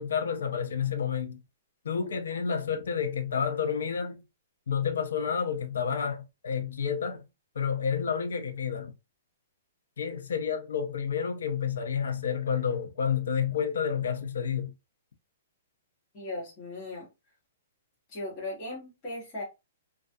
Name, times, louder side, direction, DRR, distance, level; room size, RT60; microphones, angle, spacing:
voice 1, 0.0-1.4 1.8-4.2 4.7-7.2 7.6-8.9 10.0-14.7, left 7 dB, 80° left, 0.5 m, -30 dB
voice 2, 16.1-17.1 18.1-19.4, left 2 dB, 20° left, 1.0 m, -37 dB
2.3 x 2.3 x 2.5 m
hypercardioid pair, 180°, 0 cm